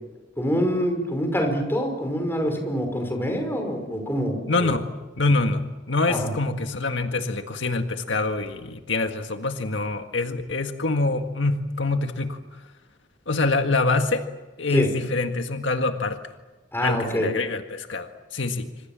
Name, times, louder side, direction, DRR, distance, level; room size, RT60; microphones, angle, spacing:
voice 1, 0.4-4.7 6.1-6.3 14.7-14.9 16.7-17.3, equal, 15° left, 4 dB, 5.6 m, -25 dB
voice 2, 4.5-4.8 5.2-12.4 13.3-14.3 14.6-16.2 16.8-18.7, left 3 dB, 75° left, 5 dB, 1.8 m, -25 dB
27.0 x 26.5 x 7.5 m, 1.2 s
head